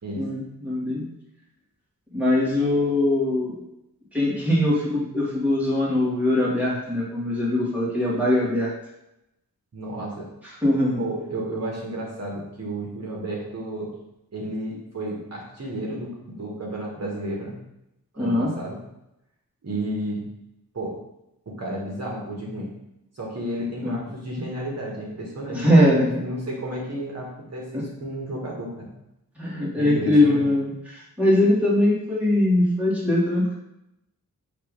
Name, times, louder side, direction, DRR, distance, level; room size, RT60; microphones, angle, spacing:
voice 1, 0.1-1.1 2.1-3.6 4.1-8.7 10.6-11.0 18.2-18.5 23.8-24.0 25.5-26.1 27.7-27.8 29.4-33.5, left 1 dB, 5° right, -7 dB, 1.7 m, -21 dB
voice 2, 9.7-10.3 11.0-13.9 14.3-17.6 18.1-18.8 19.6-20.2 20.7-20.9 21.6-22.7 23.1-25.6 25.9-28.9 29.8-30.5, right 1 dB, 45° right, -3 dB, 1.4 m, -32 dB
6.7 x 2.9 x 5.2 m, 0.86 s
wide cardioid pair, 155°, 36 cm